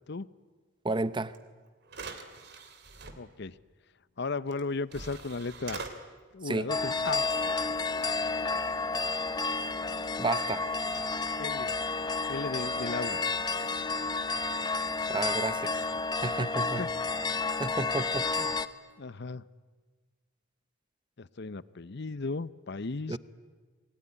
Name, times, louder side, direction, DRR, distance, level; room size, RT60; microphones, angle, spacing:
voice 1, 0.8-1.3 6.4-6.7 10.2-10.6 15.1-15.8 16.2-16.8 17.6-18.5 23.1-23.2, right 2 dB, 25° right, 15 dB, 0.8 m, -31 dB
sound 1, 1.3-1.4 1.9-3.1 4.5-4.6 4.9-5.9, right 4 dB, 55° right, 2.7 m, -43 dB
voice 2, 3.2-3.6 4.2-5.9 6.3-7.2 11.4-11.7 12.3-13.2 16.8-16.9 18.4-18.5 19.0-19.4 21.2-23.2, left 3 dB, 60° left, 17 dB, 0.8 m, -35 dB
sound 2, 6.7-18.7, left 3 dB, 20° left, 0.9 m, -31 dB
28.0 x 21.0 x 10.0 m, 1.4 s
head